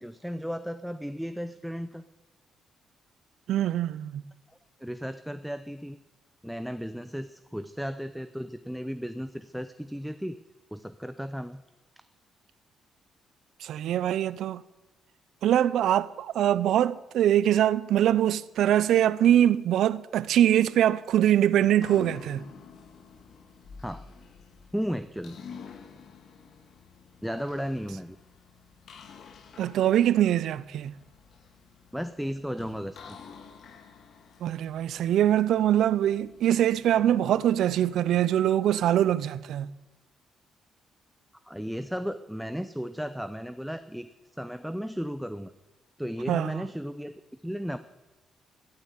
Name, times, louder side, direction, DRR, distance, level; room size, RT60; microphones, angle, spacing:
voice 1, 0.0-2.0 4.8-6.0 6.4-10.3 10.7-11.6 23.8-24.1 24.7-25.4 27.2-28.2 31.9-33.2 41.4-45.5 46.0-47.1 47.4-47.8, equal, ahead, 0.7 m, -34 dB
voice 2, 3.5-4.2 13.6-14.6 15.4-22.4 29.6-30.9 34.4-39.7 46.3-46.6, right 11 dB, 75° right, 0.6 m, -23 dB
sound 1, 21.6-39.4, left 6 dB, 65° left, 2.1 m, -49 dB
14.0 x 12.0 x 8.4 m
cardioid pair, 90°, 0 cm